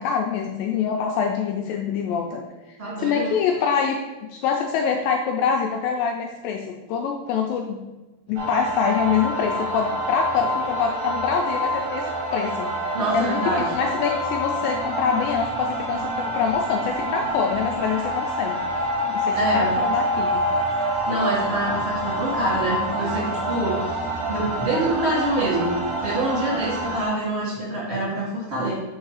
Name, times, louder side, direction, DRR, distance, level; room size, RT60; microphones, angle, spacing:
voice 1, 0.0-2.4 2.7-4.0 4.3-7.8 8.3-12.1 12.3-12.7 13.1-13.4 13.7-18.6 19.1-20.3, left 6 dB, 80° left, 2 dB, 2.1 m, -25 dB
voice 2, 2.8-3.4 12.9-13.7 19.3-19.8 21.1-28.7, right 1 dB, 25° right, -7 dB, 1.7 m, -26 dB
sound 1, 8.4-27.1, right 1 dB, 60° right, 1.5 m, -27 dB
5.4 x 4.5 x 4.8 m, 1.2 s
omnidirectional pair, 4.4 m